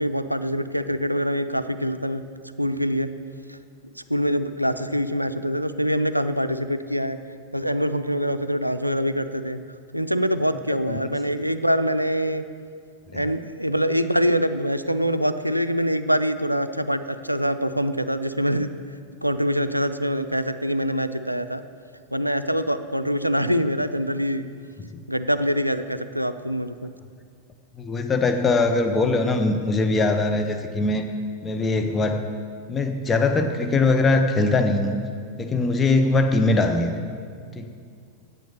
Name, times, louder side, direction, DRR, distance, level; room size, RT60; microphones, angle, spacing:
voice 1, 0.0-2.2 2.6-3.1 3.5-3.6 4.1-7.2 7.5-9.6 9.9-12.4 13.1-18.7 19.2-21.6 22.1-24.5 25.1-26.9, equal, 90° right, 11 dB, 0.4 m, -24 dB
voice 2, 27.8-31.0 31.4-32.2 32.7-35.0 35.4-36.9 37.6-37.7, left 3 dB, 20° left, 5 dB, 0.7 m, -21 dB
9.2 x 8.6 x 6.7 m, 2.2 s
figure-of-eight pair, 90°, 0 cm